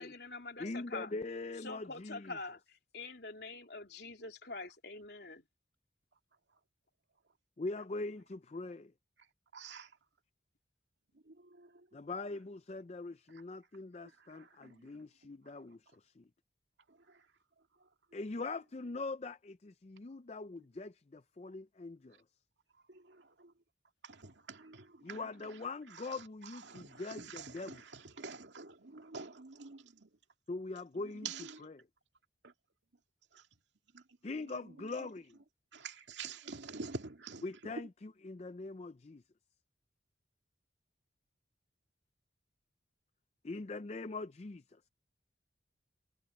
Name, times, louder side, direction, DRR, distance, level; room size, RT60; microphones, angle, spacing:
voice 1, 0.0-1.1 1.6-5.4, left 3 dB, 65° left, 3.4 m, -45 dB
voice 2, 0.6-2.4 7.6-8.9 11.9-16.2 18.1-22.2 25.0-27.8 30.5-31.3 31.6-31.7 34.2-35.4 37.4-39.2 43.4-44.6, left 3 dB, 35° left, 0.5 m, -42 dB
voice 3, 9.5-10.0 11.1-11.9 13.3-13.4 14.0-15.0 15.4-15.8 16.9-17.3 17.8-17.9 22.9-23.5 24.0-30.1 30.9-31.7 32.4-32.5 33.3-33.5 33.9-35.1 35.7-37.9, right 4 dB, 85° right, 2.2 m, -48 dB
head